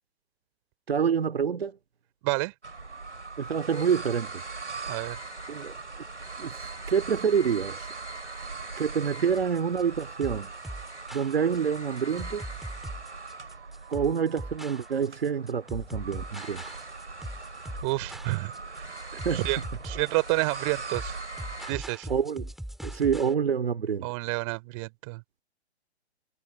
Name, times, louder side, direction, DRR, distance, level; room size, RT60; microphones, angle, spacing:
voice 1, 0.9-1.8 3.4-4.4 5.5-5.7 6.4-7.9 8.8-10.5 11.1-12.4 13.9-16.6 19.2-19.4 22.1-22.5 22.8-24.1, right 7 dB, 60° right, 2.4 m, -27 dB
sound 1, 2.6-21.7, right 3 dB, 80° right, 2.8 m, -40 dB
voice 2, 4.9-5.2 17.8-18.9 19.3-19.6 19.8-21.2 21.7-22.1 24.0-25.2, right 27 dB, 30° right, 3.1 m, -29 dB
sound 2, 9.3-23.3, right 1 dB, ahead, 4.0 m, -40 dB
figure-of-eight pair, 130°, 34 cm